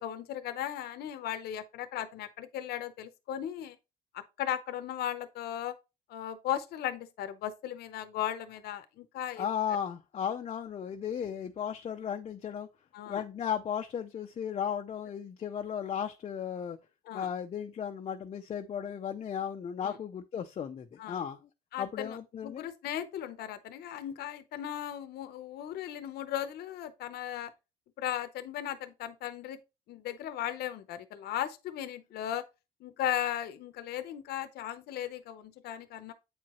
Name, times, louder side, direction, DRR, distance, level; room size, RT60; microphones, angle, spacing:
voice 1, 0.0-3.8 4.1-5.8 6.1-9.5 12.9-13.2 17.1-17.3 19.8-20.0 21.0-21.2 21.7-22.2 22.4-27.5 28.0-29.6 29.9-32.4 32.8-36.1, left 11 dB, 70° left, 0.8 m, -36 dB
voice 2, 9.4-12.7 13.1-16.8 17.1-21.4 21.8-22.6, left 8 dB, 40° left, 0.5 m, -35 dB
8.1 x 4.7 x 3.0 m
cardioid pair, 110°, 17 cm